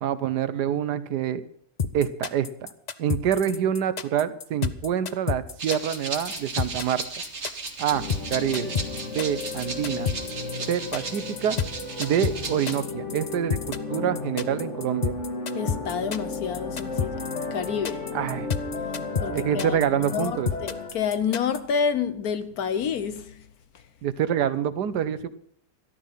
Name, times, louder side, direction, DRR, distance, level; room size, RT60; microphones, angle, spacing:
voice 1, 0.0-1.4 1.9-2.7 3.0-7.0 7.8-8.0 8.3-8.7 9.1-10.1 10.7-11.6 12.0-15.1 18.1-18.5 19.3-20.5 24.0-25.3, right 9 dB, 75° right, 1.4 m, -26 dB
sound 1, 1.8-21.6, left 6 dB, 85° left, 0.3 m, -30 dB
Rattle (instrument), 5.6-12.8, right 3 dB, 40° right, 2.0 m, -36 dB
sound 2, 7.9-20.9, left 3 dB, 45° left, 2.4 m, -34 dB
voice 2, 15.5-17.2 17.5-18.0 19.2-19.8 20.1-20.3 20.6-23.2, left 7 dB, 65° left, 1.3 m, -28 dB
13.0 x 12.5 x 5.6 m
omnidirectional pair, 1.8 m